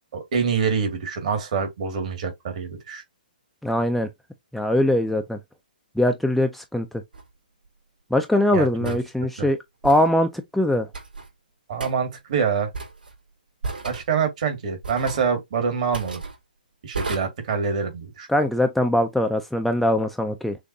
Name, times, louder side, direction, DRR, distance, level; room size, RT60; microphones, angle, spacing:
voice 1, 0.1-3.0 8.5-9.0 9.4-9.5 11.7-12.7 13.8-16.2 16.8-18.3, right 6 dB, 50° right, 2.0 m, -26 dB
voice 2, 3.6-4.1 4.5-5.4 6.0-6.9 8.1-9.6 9.8-10.9 18.3-20.6, left 1 dB, ahead, 0.4 m, -21 dB
sound 1, 7.1-7.3 8.8-9.0 9.8-10.1 10.9-11.3 11.8-11.9 12.7-13.1 13.6-14.1 14.8-15.3 15.9-16.3 16.9-17.2, right 3 dB, 75° right, 3.1 m, -33 dB
6.3 x 2.6 x 2.6 m
hypercardioid pair, 135°, 5 cm